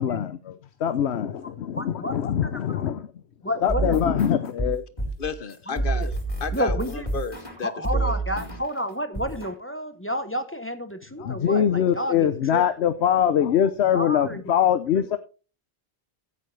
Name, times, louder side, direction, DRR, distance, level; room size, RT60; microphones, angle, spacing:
voice 1, 0.0-3.1 3.6-4.8 11.2-15.2, left 9 dB, 80° left, 1.0 m, -23 dB
voice 2, 1.4-2.1 2.7-2.8 3.4-4.2 5.7-6.1 6.5-7.1 7.6-12.7 13.8-14.4 14.9-15.1, equal, 15° left, 0.9 m, -31 dB
sound 1, 3.7-8.8 9.1-9.6, right 3 dB, 30° left, 4.2 m, -29 dB
voice 3, 5.2-6.1 6.4-8.1, left 5 dB, 55° left, 1.2 m, -33 dB
15.5 x 8.5 x 3.3 m
omnidirectional pair, 1.1 m